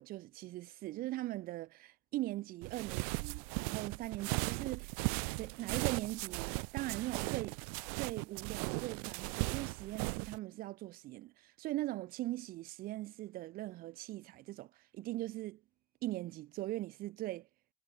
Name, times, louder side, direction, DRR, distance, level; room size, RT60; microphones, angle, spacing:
voice 1, 0.0-4.9 5.2-7.6 7.9-15.6 16.0-17.5, right 16 dB, 50° right, 1.6 m, -40 dB
sound 1, 2.6-10.4, right 39 dB, 75° right, 2.3 m, -38 dB
cardioid pair, 130°, 18 cm